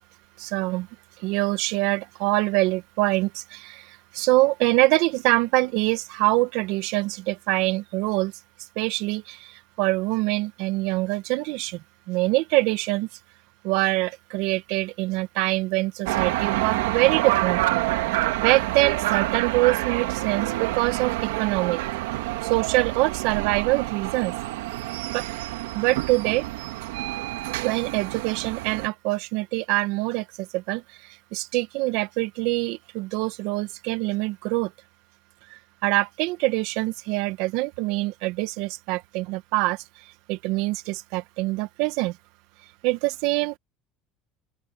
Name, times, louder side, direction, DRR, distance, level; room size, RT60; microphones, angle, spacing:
voice 1, 0.4-0.9 1.2-8.3 8.8-13.1 13.6-17.8 18.4-21.8 22.4-24.3 25.1-25.3 25.7-26.5 27.6-34.7 35.5-39.8 40.3-42.2 42.8-43.6, right 21 dB, 70° right, 1.3 m, -25 dB
sound 1, 16.1-28.9, right 17 dB, 90° right, 2.3 m, -27 dB
open air
supercardioid pair, 115°, 0 cm